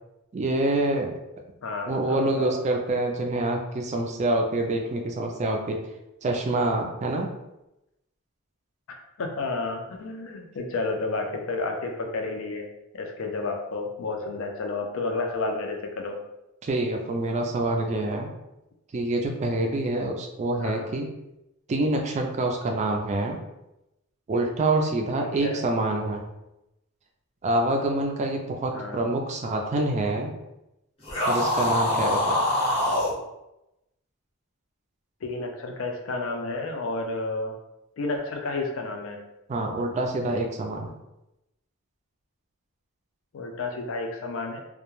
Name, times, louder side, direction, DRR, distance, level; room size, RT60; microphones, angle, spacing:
voice 1, 0.3-1.1 1.9-5.8 6.2-7.3 16.6-18.3 18.9-21.1 21.7-23.4 24.3-26.3 27.4-30.3 31.2-32.4 39.5-40.9, right 2 dB, 35° right, 2 dB, 0.3 m, -26 dB
voice 2, 1.6-2.6 8.9-12.7 12.9-16.2 20.6-20.9 25.2-25.7 28.7-29.2 35.2-37.6 38.0-39.2 43.3-44.6, left 3 dB, 65° left, 3 dB, 0.4 m, -31 dB
sound 1, 31.0-33.1, left 1 dB, 25° left, 0.7 m, -24 dB
2.2 x 2.1 x 3.0 m, 0.91 s
head